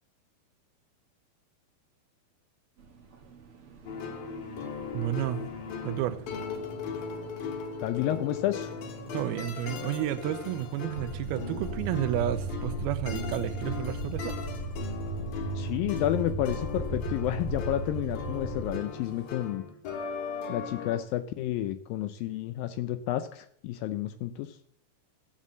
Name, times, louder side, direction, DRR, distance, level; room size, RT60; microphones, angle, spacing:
sound 1, 2.8-19.3, right 5 dB, 45° right, 2.0 m, -51 dB
sound 2, 3.9-21.0, left 6 dB, 65° left, 3.4 m, -38 dB
voice 1, 4.9-5.4 5.8-6.2 9.1-14.4, right 13 dB, 80° right, 12 dB, 2.6 m, -31 dB
voice 2, 7.8-8.7 15.6-19.6 20.5-24.6, left 13 dB, 80° left, 11 dB, 2.1 m, -30 dB
sound 3, 10.9-18.8, right 2 dB, 15° left, 2.7 m, -35 dB
15.0 x 7.4 x 7.4 m, 0.65 s
omnidirectional pair, 4.6 m